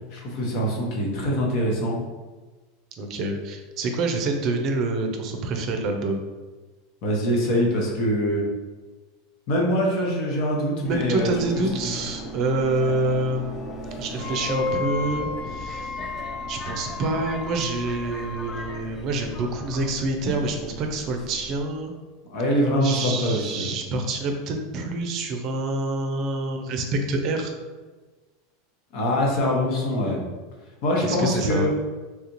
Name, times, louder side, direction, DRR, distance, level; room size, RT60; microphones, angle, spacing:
voice 1, 0.1-2.0 7.0-8.4 9.5-11.3 11.5-11.9 12.8-12.9 22.3-23.8 28.9-30.2 30.8-31.7, equal, 60° left, -2 dB, 1.0 m, -24 dB
voice 2, 3.0-6.2 10.8-13.7 14.0-16.0 16.5-21.9 22.8-27.5 31.0-31.7, right 2 dB, 50° right, 4 dB, 0.5 m, -27 dB
Subway metro underground, 10.8-21.6, equal, 25° left, 0.7 m, -36 dB
Wind instrument woodwind instrument, 14.2-18.7, left 5 dB, 80° left, 0.4 m, -35 dB
3.3 x 2.4 x 2.9 m, 1.3 s
hypercardioid pair, 100°, 0 cm